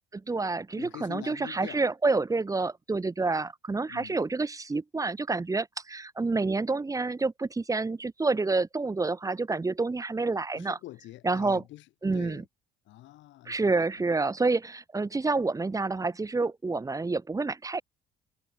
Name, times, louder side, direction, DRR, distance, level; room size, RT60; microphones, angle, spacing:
voice 1, 0.1-10.8 11.2-11.6 12.0-12.4 13.4-17.8, right 3 dB, 15° right, 3.3 m, -28 dB
voice 2, 0.8-1.8 3.9-4.2 10.5-11.8 12.1-12.4 12.9-13.9, left 16 dB, 75° left, 3.7 m, -44 dB
cardioid pair, 125°, 19 cm